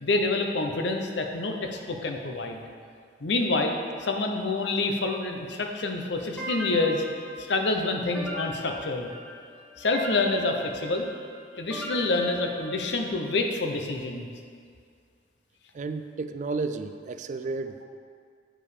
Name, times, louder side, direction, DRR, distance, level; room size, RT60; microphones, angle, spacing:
voice 1, 0.0-2.6 3.2-7.0 7.4-9.1 9.8-11.1 11.6-14.3, left 2 dB, 75° left, 3 dB, 0.8 m, -27 dB
sound 1, 6.4-13.3, equal, 5° left, 1.1 m, -39 dB
voice 2, 15.7-17.8, right 3 dB, 45° right, 9 dB, 0.3 m, -32 dB
8.8 x 4.9 x 4.9 m, 2.2 s
head